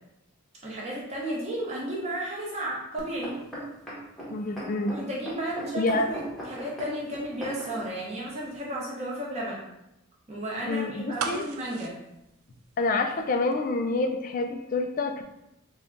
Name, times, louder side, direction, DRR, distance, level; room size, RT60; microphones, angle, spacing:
voice 1, 0.6-3.4 4.9-9.6 10.3-12.0, right 1 dB, 30° right, -5 dB, 0.9 m, -33 dB
sound 1, 3.0-7.9 8.5-8.6, right 1 dB, ahead, 0.9 m, -38 dB
voice 2, 4.3-4.9 5.7-6.1 10.7-11.5 12.8-15.2, left 3 dB, 40° left, 5 dB, 0.3 m, -27 dB
sound 2, 11.2-13.2 13.5-13.6, right 5 dB, 85° right, 0.4 m, -36 dB
3.7 x 2.3 x 3.8 m, 0.87 s
head